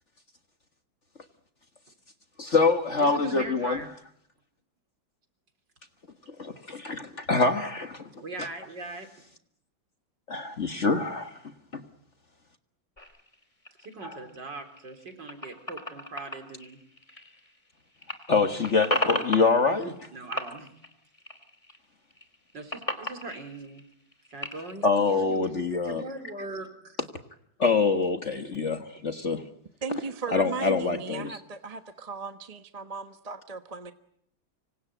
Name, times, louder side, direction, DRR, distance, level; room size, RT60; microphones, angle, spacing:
voice 1, 2.4-3.8 6.4-8.1 10.3-11.3 11.7-11.8 14.0-14.2 18.3-19.9 24.8-26.0 27.6-29.4 30.3-31.4, left 4 dB, 40° left, 8 dB, 1.6 m, -25 dB
voice 2, 3.0-3.9 8.2-9.1 13.8-16.8 19.6-20.7 22.5-23.8 24.3-27.0 28.3-28.4, right 3 dB, 65° right, 7 dB, 4.6 m, -40 dB
sound 1, 13.0-17.7 18.0-20.1 20.3-21.8 22.1-24.7, left 1 dB, 15° left, 2.8 m, -35 dB
voice 3, 29.8-33.9, right 4 dB, 25° right, 9 dB, 1.1 m, -37 dB
26.0 x 24.5 x 9.1 m, 0.69 s
omnidirectional pair, 2.1 m